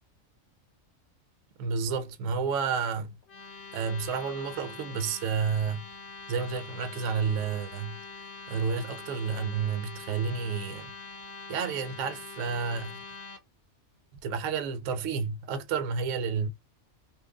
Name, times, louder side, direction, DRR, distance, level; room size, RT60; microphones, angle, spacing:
voice 1, 1.6-3.2 3.7-5.8 6.3-8.0 8.5-10.9 11.5-13.0 14.2-16.5, right 6 dB, 70° right, 0.9 m, -30 dB
sound 1, 3.2-13.4, left 4 dB, 55° left, 0.7 m, -44 dB
2.9 x 2.3 x 3.6 m
omnidirectional pair, 1.4 m